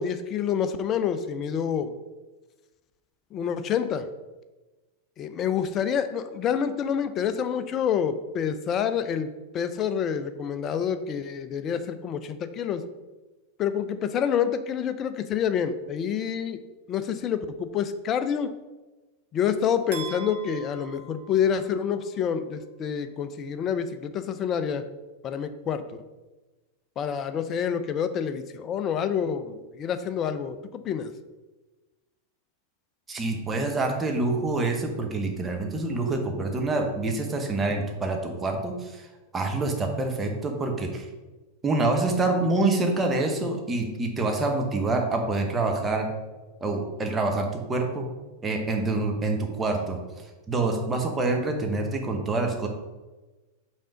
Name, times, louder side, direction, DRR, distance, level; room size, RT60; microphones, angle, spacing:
voice 1, 0.0-1.9 3.3-4.1 5.2-12.8 13.6-16.6 16.9-18.5 19.3-24.8 25.2-25.8 27.0-31.1, left 8 dB, 30° left, 11 dB, 0.5 m, -27 dB
sound 1, 19.9-22.0, right 4 dB, 60° right, 0.9 m, -42 dB
voice 2, 33.1-39.1 39.3-41.1 41.6-46.1 46.6-48.1 48.4-50.0 50.5-52.7, right 2 dB, 15° right, 2 dB, 1.0 m, -26 dB
5.4 x 3.6 x 5.0 m, 1.2 s
figure-of-eight pair, 90°, 0 cm